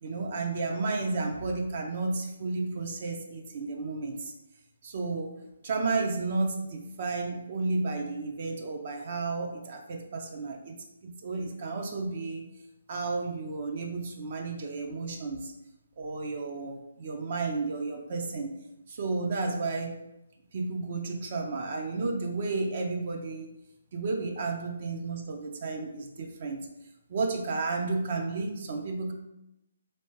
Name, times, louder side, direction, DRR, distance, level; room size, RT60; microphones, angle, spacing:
voice 1, 0.0-4.3 4.8-5.3 5.6-12.5 12.9-15.5 16.0-18.6 18.9-20.0 20.5-23.5 23.9-26.7 27.1-29.1, right 3 dB, 50° right, 2 dB, 0.6 m, -32 dB
3.3 x 3.1 x 2.8 m, 0.87 s
figure-of-eight pair, 145°, 0 cm